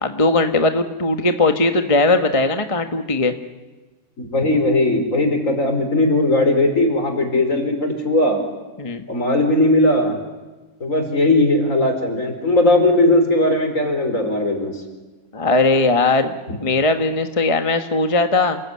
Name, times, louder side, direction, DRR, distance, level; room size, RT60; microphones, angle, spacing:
voice 1, 0.0-3.3 8.8-9.0 15.3-16.3 16.6-18.6, left 2 dB, 25° left, 7 dB, 1.4 m, -18 dB
voice 2, 4.2-8.4 9.1-10.1 10.8-14.7 16.5-16.6, left 2 dB, 65° left, 5 dB, 5.1 m, -18 dB
28.5 x 20.5 x 9.7 m, 1.2 s
omnidirectional pair, 1.5 m